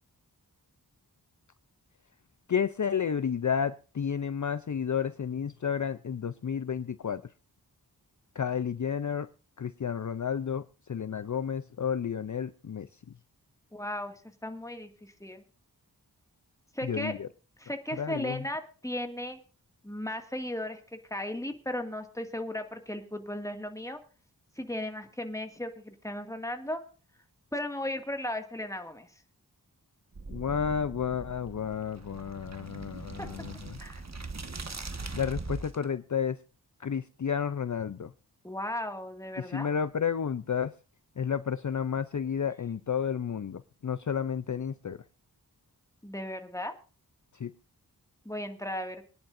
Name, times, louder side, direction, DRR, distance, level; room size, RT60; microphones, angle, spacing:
voice 1, 2.5-7.3 8.3-9.3 9.6-13.0 16.8-17.3 17.9-18.4 30.3-33.8 35.1-36.4 36.8-38.1 39.4-40.7 41.2-45.0 47.3-47.5, left 7 dB, 50° left, 13 dB, 0.6 m, -31 dB
voice 2, 13.7-14.2 14.4-15.4 16.7-17.1 17.6-19.4 19.8-20.8 21.1-24.0 24.6-26.8 27.5-29.1 33.2-33.3 33.8-34.0 38.4-39.7 46.0-46.7 48.3-49.0, left 1 dB, 10° left, 5 dB, 2.1 m, -36 dB
sound 1, 30.1-35.8, right 3 dB, 45° right, 1.5 m, -41 dB
24.5 x 10.5 x 2.6 m, 0.36 s
wide cardioid pair, 60°, 38 cm